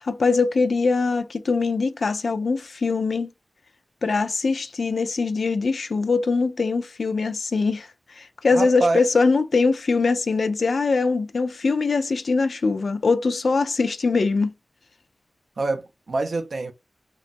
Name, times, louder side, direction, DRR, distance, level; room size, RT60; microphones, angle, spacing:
voice 1, 0.0-3.3 4.0-14.5, left 4 dB, 80° left, 0.3 m, -22 dB
voice 2, 8.5-9.0 15.6-16.7, right 3 dB, 80° right, 0.4 m, -25 dB
2.9 x 2.3 x 2.5 m
wide cardioid pair, 65°, 0 cm